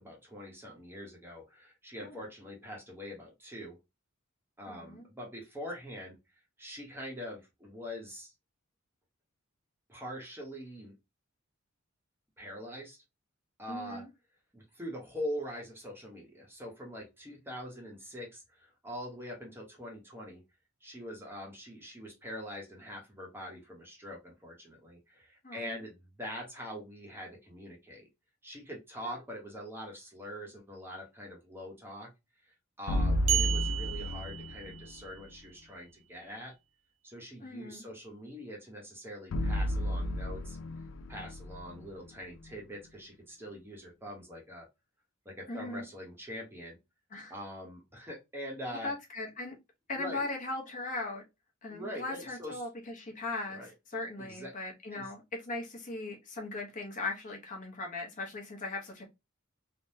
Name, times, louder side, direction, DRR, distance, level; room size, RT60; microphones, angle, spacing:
voice 1, 0.0-3.8 4.6-6.2 6.6-8.3 9.9-10.9 12.4-13.0 13.6-14.0 14.5-20.4 20.8-28.1 28.4-32.1 32.8-36.6 37.0-40.6 41.1-44.7 45.2-46.8 47.3-48.9 49.9-50.2 51.7-52.6 53.5-53.7 54.2-54.5 54.9-55.1, equal, 10° right, 0.9 m, -43 dB
voice 2, 4.7-5.1 13.7-14.1 25.4-25.8 29.0-29.2 37.4-37.8 45.5-45.9 47.1-47.3 48.7-49.6 49.9-51.2 51.6-53.6 53.9-59.0, left 2 dB, 40° left, 0.9 m, -39 dB
sound 1, 32.9-35.1 39.3-42.5, left 1 dB, 65° left, 0.4 m, -32 dB
sound 2, 33.3-35.1, right 12 dB, 75° right, 0.5 m, -33 dB
3.4 x 2.1 x 2.6 m
head